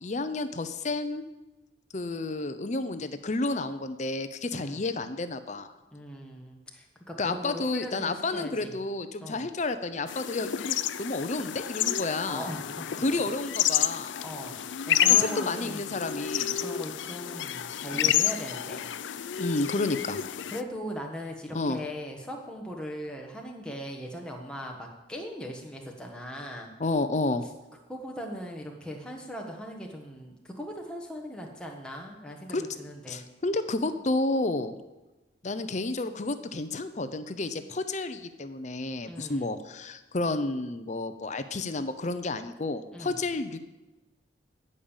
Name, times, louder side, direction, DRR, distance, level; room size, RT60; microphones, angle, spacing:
voice 1, 0.0-1.3 1.9-5.7 7.2-12.5 13.0-14.2 15.2-16.6 17.9-18.1 19.4-20.2 21.5-21.8 26.8-27.5 32.5-32.6 33.1-34.8 35.4-43.6, left 2 dB, 40° left, 10 dB, 0.6 m, -31 dB
voice 2, 4.5-4.8 5.9-8.8 9.2-9.4 12.3-13.2 14.2-15.9 16.6-18.9 20.5-26.7 27.9-33.2 39.1-39.5 42.9-43.2, equal, 5° left, 0 dB, 1.3 m, -39 dB
sound 1, 10.1-20.6, left 11 dB, 75° left, 0.4 m, -29 dB
13.5 x 5.4 x 7.3 m, 1.1 s
head